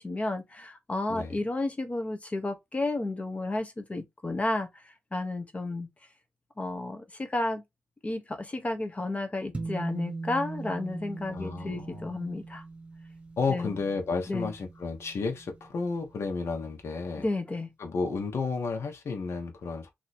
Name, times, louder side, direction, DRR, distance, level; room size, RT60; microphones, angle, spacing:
voice 1, 0.0-5.9 6.6-7.6 8.0-12.6 13.5-13.7 14.3-14.5 17.2-17.7, left 2 dB, 25° left, 1.1 m, -32 dB
sound 1, 9.5-16.1, right 3 dB, 25° right, 1.1 m, -40 dB
voice 2, 11.3-12.1 13.4-17.3 17.8-19.9, left 4 dB, 60° left, 1.2 m, -32 dB
3.1 x 3.0 x 4.2 m
cardioid pair, 90°, 5 cm